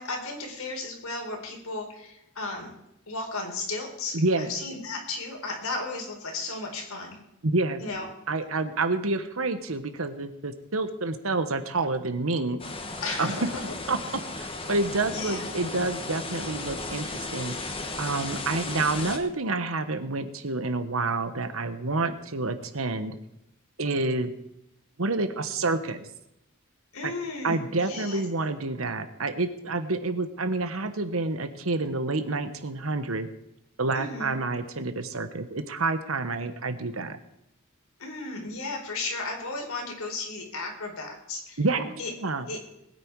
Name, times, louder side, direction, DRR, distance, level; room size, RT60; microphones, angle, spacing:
voice 1, 0.0-2.7 3.1-7.2 7.8-8.1 13.0-13.7 15.1-15.4 26.9-28.2 33.9-34.3 38.0-41.6 42.0-42.1 42.5-42.6, left 3 dB, 90° left, 1 dB, 4.2 m, -34 dB
voice 2, 4.1-4.5 7.4-7.8 8.3-12.6 13.2-13.4 13.9-14.0 14.3-17.7 18.0-23.2 23.8-24.3 25.0-26.1 27.0-27.1 27.4-33.3 33.8-37.2 41.6-42.5, right 3 dB, 70° right, 10 dB, 1.3 m, -28 dB
sound 1, 12.6-19.2, left 3 dB, 25° left, 1.6 m, -35 dB
20.5 x 9.5 x 4.8 m, 0.83 s
head